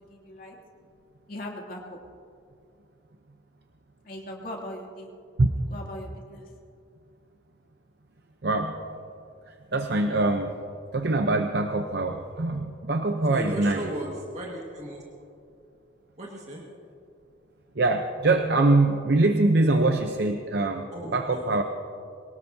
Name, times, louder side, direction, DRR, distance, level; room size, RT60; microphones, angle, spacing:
voice 1, 0.1-0.6 1.3-2.0 4.0-5.1 5.7-6.4, left 1 dB, 50° left, -1 dB, 2.7 m, -39 dB
voice 2, 8.4-8.8 9.7-10.6 10.9-13.8 17.8-21.6, right 2 dB, 60° right, 6 dB, 0.7 m, -23 dB
voice 3, 13.3-15.0 16.2-16.6 20.9-21.4, right 1 dB, 40° right, -2 dB, 1.8 m, -36 dB
23.0 x 18.5 x 2.8 m, 2.5 s
head